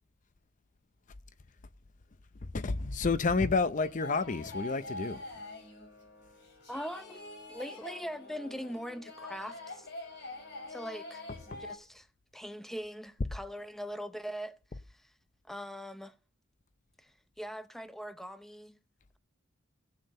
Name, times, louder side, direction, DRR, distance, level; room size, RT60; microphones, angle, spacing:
voice 1, 2.4-5.2 11.5-11.6, left 4 dB, 40° left, 0.6 m, -30 dB
sound 1, 3.8-11.8, left 2 dB, 55° left, 5.5 m, -45 dB
voice 2, 6.7-7.2 7.5-9.9 10.7-11.2 11.6-12.1 12.3-14.6 15.5-16.2 17.0-18.8, equal, ahead, 0.7 m, -41 dB
16.5 x 7.7 x 5.4 m
head